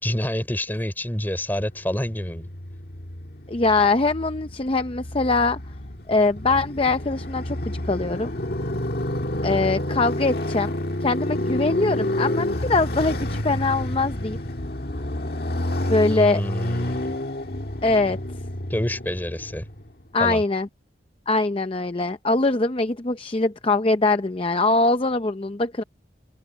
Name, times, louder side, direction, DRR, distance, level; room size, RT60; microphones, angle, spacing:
voice 1, 0.0-2.5 16.1-17.2 18.7-19.7 20.2-20.4, equal, 10° left, 3.5 m, -28 dB
Motorcycle, 1.7-19.9, left 1 dB, 55° left, 1.7 m, -29 dB
voice 2, 3.5-5.6 6.1-8.3 9.4-10.7 11.0-14.4 15.8-16.4 17.8-18.2 20.1-20.7 21.3-25.8, left 3 dB, 30° left, 0.6 m, -22 dB
open air
head